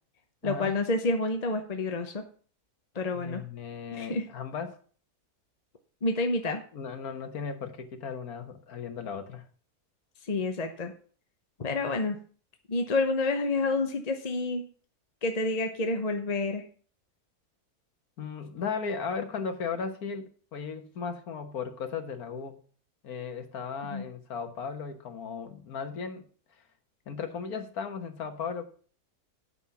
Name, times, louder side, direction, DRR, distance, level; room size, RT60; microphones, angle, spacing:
voice 1, 0.4-2.2 2.9-3.4 3.9-4.3 6.0-6.6 10.3-10.9 11.6-12.2 12.7-14.7 15.2-16.6 23.9-24.1, left 2 dB, 35° left, 5 dB, 0.7 m, -29 dB
voice 2, 3.1-4.8 6.7-9.5 18.2-22.6 23.0-26.3 26.6-26.7 27.1-28.6, left 5 dB, 70° left, 6 dB, 1.8 m, -36 dB
8.9 x 5.7 x 7.0 m, 0.43 s
omnidirectional pair, 1.6 m